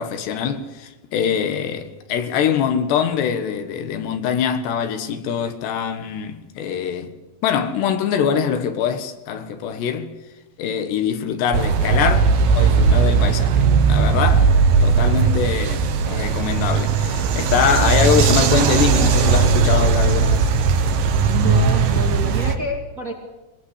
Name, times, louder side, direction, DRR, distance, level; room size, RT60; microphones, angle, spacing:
voice 1, 0.0-7.1 7.4-10.1 10.6-14.5 14.8-20.5, left 7 dB, 80° left, 3.6 m, -23 dB
sound 1, 11.5-22.5, right 5 dB, 65° right, 2.7 m, -17 dB
voice 2, 21.3-23.1, right 2 dB, 30° right, 1.8 m, -28 dB
22.5 x 20.5 x 8.2 m
omnidirectional pair, 4.9 m